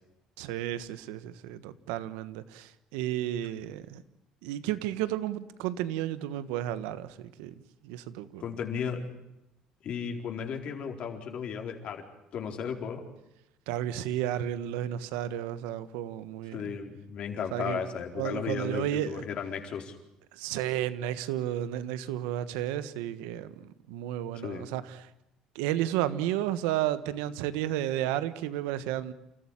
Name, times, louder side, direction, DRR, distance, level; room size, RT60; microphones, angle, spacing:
voice 1, 0.4-4.0 4.4-7.5 7.8-8.4 13.7-16.8 17.5-17.8 18.2-19.2 20.3-25.1 25.5-29.1, right 12 dB, 90° right, 1.4 m, -32 dB
voice 2, 8.4-9.0 9.8-12.1 12.3-13.0 16.5-19.9 24.4-24.7, left 7 dB, 55° left, 4.3 m, -35 dB
29.0 x 14.5 x 10.0 m
cardioid pair, 100°, 2 cm